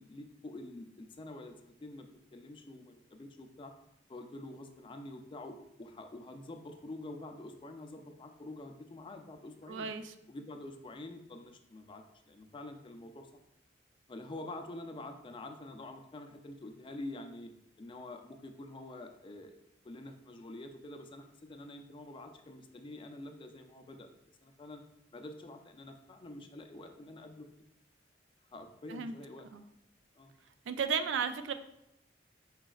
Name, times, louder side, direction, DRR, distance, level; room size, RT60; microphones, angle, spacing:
voice 1, 0.0-3.7 4.1-9.9 10.3-13.3 14.1-17.5 17.8-19.6 19.8-24.1 24.4-24.8 25.1-27.5 28.5-29.5 30.2-30.3, left 2 dB, 30° left, 5 dB, 0.4 m, -47 dB
voice 2, 9.7-10.1 28.9-29.1 29.5-29.6 30.7-31.5, right 6 dB, 85° right, 9 dB, 0.3 m, -34 dB
5.1 x 4.0 x 2.3 m, 0.85 s
head